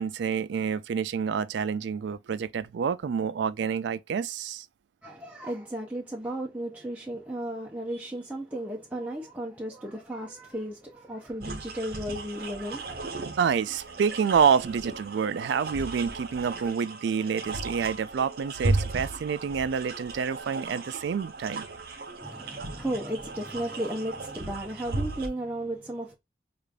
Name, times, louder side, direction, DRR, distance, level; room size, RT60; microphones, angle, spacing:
voice 1, 0.0-4.7 13.4-21.7, right 6 dB, 75° right, 0.3 m, -28 dB
voice 2, 5.0-13.3 22.2-26.2, right 1 dB, 10° right, 0.5 m, -35 dB
sound 1, 11.4-25.3, right 3 dB, 50° right, 0.7 m, -35 dB
4.8 x 2.5 x 2.2 m
head